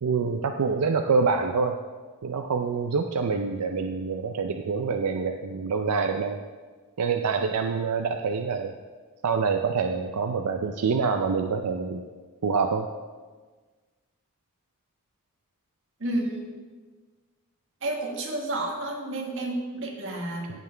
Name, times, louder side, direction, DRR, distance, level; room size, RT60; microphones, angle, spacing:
voice 1, 0.0-1.8 2.2-6.4 7.0-8.7 9.2-12.0 12.4-12.9, right 5 dB, 85° right, 6 dB, 0.5 m, -26 dB
voice 2, 16.0-16.5 17.8-20.5, right 1 dB, 60° right, 0 dB, 1.5 m, -30 dB
16.5 x 5.8 x 3.3 m, 1.4 s
head